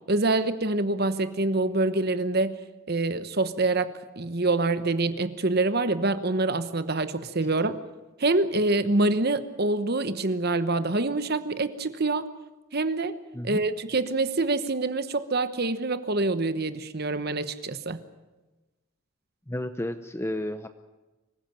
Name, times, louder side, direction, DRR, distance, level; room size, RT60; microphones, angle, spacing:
voice 1, 0.1-2.6 2.9-3.9 4.2-7.8 8.2-12.3 12.7-13.2 13.4-18.0, right 2 dB, 45° right, 12 dB, 1.1 m, -26 dB
voice 2, 19.5-20.7, left 1 dB, 10° left, 9 dB, 0.7 m, -32 dB
25.0 x 16.0 x 8.9 m, 1.1 s
head